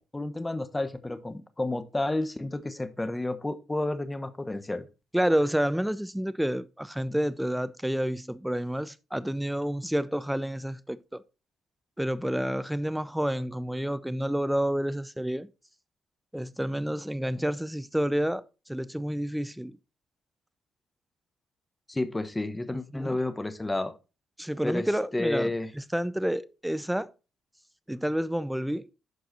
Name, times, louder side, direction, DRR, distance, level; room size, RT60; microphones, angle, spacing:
voice 1, 0.0-4.9 21.9-23.9 24.6-25.7, left 2 dB, 15° left, 1.1 m, -31 dB
voice 2, 5.1-11.2 12.0-15.5 16.3-19.8 22.9-23.2 24.4-27.1 27.9-28.9, equal, 5° right, 0.6 m, -29 dB
11.5 x 4.7 x 3.9 m
cardioid pair, 90°, 0 cm